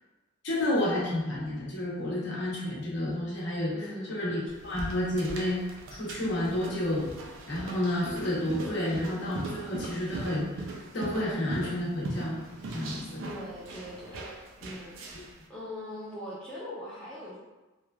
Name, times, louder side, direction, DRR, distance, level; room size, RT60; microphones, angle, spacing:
voice 1, 0.4-3.7 4.1-5.6 5.9-7.1 7.5-10.7 10.9-12.4 12.7-13.3, left 1 dB, 55° left, -6 dB, 0.8 m, -30 dB
voice 2, 3.7-4.3 13.2-14.3 14.6-15.0 15.5-17.4, left 1 dB, 5° left, -9 dB, 0.4 m, -41 dB
sound 1, 4.5-15.4, right 2 dB, 60° right, 0.4 m, -40 dB
3.0 x 2.3 x 2.2 m, 1.1 s
head